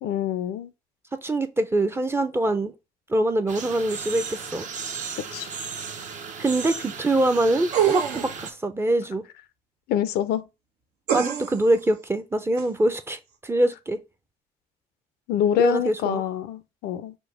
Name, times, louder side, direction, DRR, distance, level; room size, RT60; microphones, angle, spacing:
voice 1, 0.0-0.7 5.3-5.5 9.9-10.4 15.3-17.1, left 10 dB, 75° left, 0.5 m, -25 dB
voice 2, 1.2-2.7 3.1-4.7 6.4-9.2 11.1-14.0 15.6-16.2, right 1 dB, 15° right, 0.5 m, -24 dB
sound 1, 3.5-8.5, right 6 dB, 45° right, 0.8 m, -35 dB
sound 2, 7.7-8.4 11.1-11.7 12.6-12.7, right 9 dB, 75° right, 1.0 m, -24 dB
5.1 x 2.1 x 4.5 m
cardioid pair, 110°, 17 cm